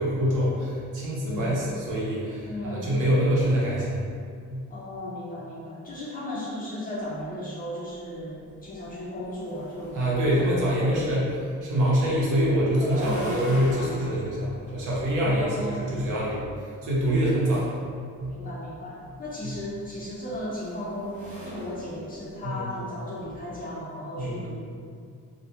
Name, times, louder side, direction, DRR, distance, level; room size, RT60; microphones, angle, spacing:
voice 1, 0.0-4.0 4.5-4.7 9.9-11.3 11.6-16.5 16.8-17.6 18.2-18.4 22.4-22.6 24.2-24.5, equal, 70° right, -6 dB, 0.7 m, -25 dB
voice 2, 1.2-1.6 2.4-2.9 4.7-10.0 10.3-10.5 10.8-11.1 13.0-13.4 15.2-16.0 17.3-17.7 18.3-24.8, left 1 dB, 30° left, -7 dB, 0.4 m, -36 dB
sound 1, 8.2-8.3 8.7-10.7 12.5-15.8 17.1-17.8 19.2-22.7, equal, 25° right, 0.6 m, -39 dB
2.2 x 2.1 x 2.7 m, 2.2 s
cardioid pair, 165°, 32 cm